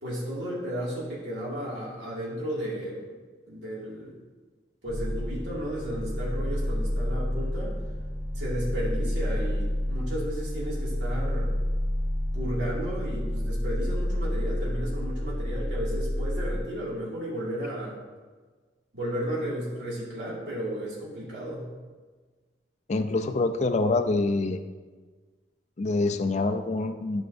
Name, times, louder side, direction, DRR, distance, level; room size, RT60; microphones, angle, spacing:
voice 1, 0.0-3.0 3.5-4.2 4.8-7.8 8.3-11.5 12.3-18.0 18.9-21.7, equal, 75° right, -7 dB, 2.1 m, -33 dB
sound 1, 4.8-13.5, equal, 20° left, 0.9 m, -45 dB
sound 2, 4.9-16.6, left 1 dB, 35° right, 0.7 m, -29 dB
voice 2, 22.9-24.6 25.8-27.3, left 3 dB, 40° left, 8 dB, 0.4 m, -26 dB
12.5 x 5.8 x 2.6 m, 1.4 s
head